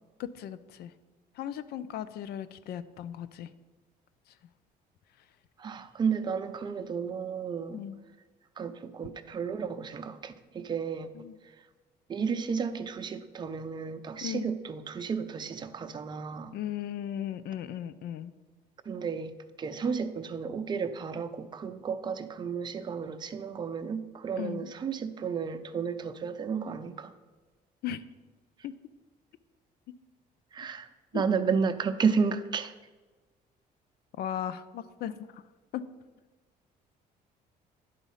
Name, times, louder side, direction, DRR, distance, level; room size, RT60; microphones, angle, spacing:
voice 1, 0.2-0.9 1.3-3.5 4.3-4.4 7.7-8.0 11.1-11.4 14.2-14.5 16.5-18.3 24.4-24.7 27.8-28.0 28.6-28.7 31.1-31.2 34.2-35.4 35.7-35.8, left 10 dB, 70° left, 15 dB, 0.5 m, -37 dB
voice 2, 5.6-7.8 8.6-11.1 11.4-11.6 12.1-16.6 18.8-19.3 19.6-27.1 30.5-32.7, right 6 dB, 25° right, 8 dB, 0.5 m, -32 dB
10.0 x 4.1 x 5.5 m, 1.3 s
cardioid pair, 110°, 17 cm